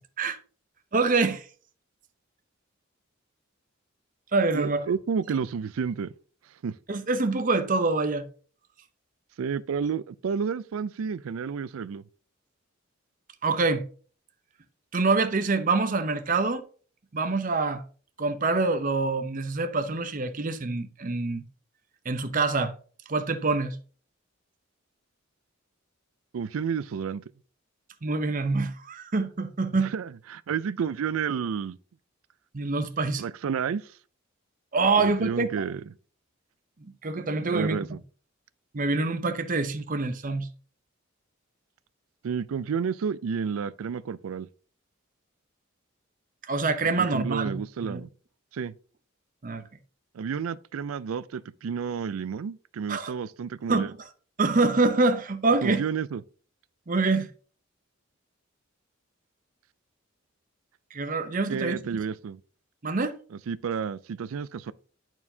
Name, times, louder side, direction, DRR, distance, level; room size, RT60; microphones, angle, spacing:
voice 1, 0.9-1.5 4.3-4.8 6.9-8.3 13.4-13.8 14.9-16.6 17.1-17.8 18.2-21.4 22.0-22.7 23.1-23.8 28.0-29.9 32.5-33.2 34.7-35.5 36.8-37.8 38.7-40.5 46.5-48.0 49.4-49.6 52.9-53.1 53.7-54.1 54.4-55.8 56.9-57.3 60.9-61.8 62.8-63.2, right 3 dB, 40° right, 0.7 m, -25 dB
voice 2, 4.5-6.1 6.6-6.7 9.4-12.0 26.3-27.2 29.9-31.8 33.2-33.8 35.0-35.8 37.4-38.0 42.2-44.5 47.1-48.1 48.5-48.7 50.1-53.9 55.6-56.2 61.5-62.4 63.5-64.7, right 6 dB, 90° right, 0.4 m, -30 dB
10.5 x 4.5 x 2.7 m
head